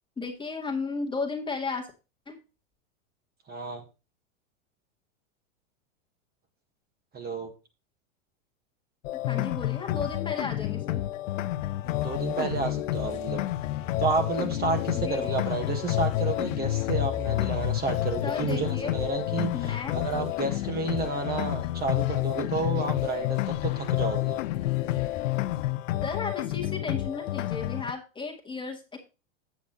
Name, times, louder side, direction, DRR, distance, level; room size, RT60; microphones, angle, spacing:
voice 1, 0.2-1.9 2.3-2.4 9.1-11.0 14.9-15.4 18.2-18.9 19.5-20.0 26.0-29.0, left 4 dB, 10° left, 1 dB, 1.8 m, -34 dB
voice 2, 3.5-3.8 7.1-7.5 12.0-13.4 14.0-24.4, right 4 dB, 25° right, 4 dB, 1.7 m, -31 dB
sound 1, 9.0-27.9, left 15 dB, 75° left, 0.8 m, -29 dB
sound 2, 11.8-25.7, left 11 dB, 45° left, 1.4 m, -41 dB
8.4 x 7.1 x 4.0 m, 0.29 s
hypercardioid pair, 125°, 39 cm